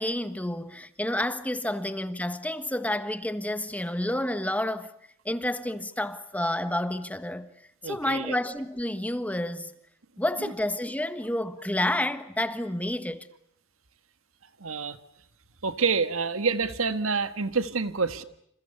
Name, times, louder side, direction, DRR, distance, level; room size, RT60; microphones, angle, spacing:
voice 1, 0.0-4.9 5.2-7.5 7.8-9.7 10.2-13.3, left 1 dB, 5° left, 1.4 m, -29 dB
voice 2, 7.8-8.4 10.4-10.5 14.6-15.0 15.6-18.2, right 5 dB, 80° right, 1.7 m, -27 dB
28.5 x 28.5 x 7.0 m
head